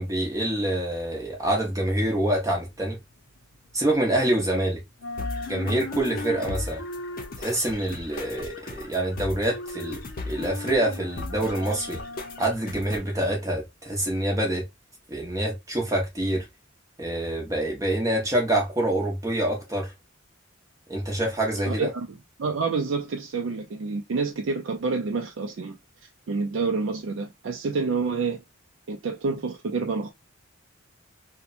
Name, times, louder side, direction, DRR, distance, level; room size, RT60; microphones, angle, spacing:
voice 1, 0.0-3.0 3.7-4.8 5.5-6.8 7.4-10.0 10.3-12.0 12.4-14.7 15.1-16.5 17.0-19.9 20.9-21.9, right 1 dB, 15° right, 0.7 m, -26 dB
sound 1, 2.7-4.6 4.9-13.0, left 3 dB, 90° left, 0.6 m, -39 dB
sound 2, 5.2-13.2, left 2 dB, 45° left, 0.6 m, -38 dB
voice 2, 21.7-25.8 26.3-28.4 28.9-30.1, right 4 dB, 65° right, 0.4 m, -28 dB
2.8 x 2.1 x 2.4 m
head